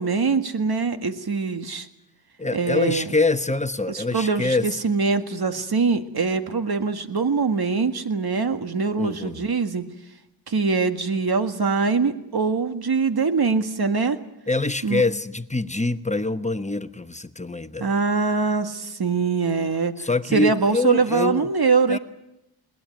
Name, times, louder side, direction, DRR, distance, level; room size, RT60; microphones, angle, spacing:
voice 1, 0.0-1.9 2.5-3.1 3.9-9.9 10.5-14.2 14.8-15.0 17.8-19.9 20.3-22.0, right 4 dB, 55° right, 1.9 m, -23 dB
voice 2, 2.4-4.7 9.0-9.4 14.5-18.0 20.0-21.5 21.9-22.0, left 3 dB, 15° left, 1.0 m, -25 dB
21.5 x 18.5 x 9.3 m
wide cardioid pair, 75°, 46 cm